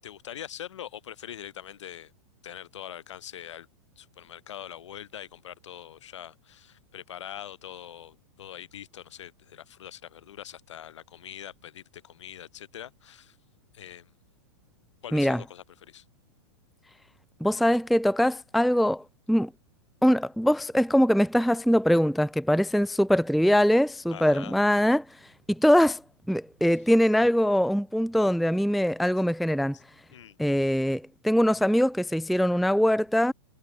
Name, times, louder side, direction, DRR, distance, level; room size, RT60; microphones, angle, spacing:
voice 1, 0.0-2.1 2.4-3.7 4.0-13.4 13.7-14.1 15.0-16.0 24.1-24.5 29.7-29.8 30.1-30.4, left 10 dB, 80° left, 7.2 m, -43 dB
voice 2, 17.4-19.5 20.0-25.0 25.5-26.0 26.3-29.8 30.4-33.3, equal, ahead, 0.3 m, -22 dB
supercardioid pair, 165°, 15 cm